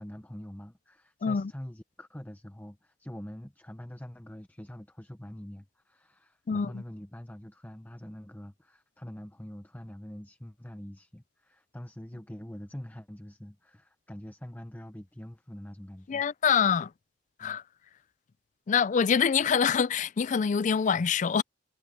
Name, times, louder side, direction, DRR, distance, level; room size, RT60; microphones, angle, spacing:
voice 1, 0.0-16.2 17.4-17.6, equal, 10° left, 0.8 m, -44 dB
voice 2, 6.5-6.8 16.1-16.9 17.4-17.6 18.7-21.4, left 6 dB, 45° left, 0.4 m, -25 dB
head